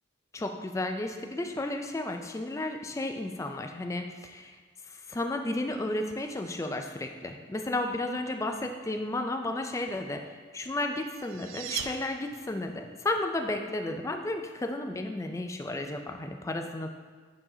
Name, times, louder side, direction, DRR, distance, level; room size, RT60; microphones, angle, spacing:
voice 1, 0.3-4.6 4.9-10.2 10.5-16.9, left 2 dB, 15° left, 5 dB, 0.3 m, -33 dB
sound 1, 10.7-12.8, right 9 dB, 90° right, 0.4 m, -39 dB
8.6 x 4.7 x 2.7 m, 1.5 s
head